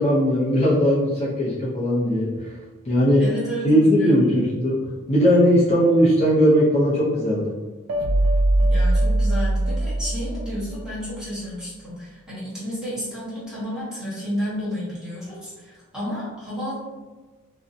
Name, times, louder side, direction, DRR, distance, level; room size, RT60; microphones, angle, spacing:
voice 1, 0.0-2.5 2.9-3.2 3.6-4.8 5.1-7.6, equal, 30° left, -8 dB, 0.4 m, -19 dB
voice 2, 3.2-4.2 8.6-16.8, equal, 5° right, -10 dB, 0.9 m, -31 dB
sound 1, 7.9-11.1, right 1 dB, 85° right, 0.4 m, -21 dB
2.5 x 2.1 x 2.5 m, 1.2 s
head